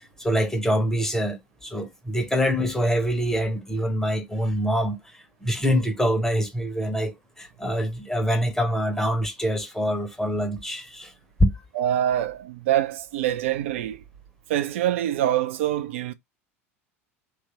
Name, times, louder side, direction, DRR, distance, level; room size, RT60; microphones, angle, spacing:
voice 1, 0.0-11.1 11.4-11.6, equal, 5° left, 0.6 m, -25 dB
voice 2, 11.7-14.0 14.5-16.1, right 12 dB, 60° right, 0.4 m, -25 dB
2.9 x 2.3 x 2.9 m
figure-of-eight pair, 80°, 8 cm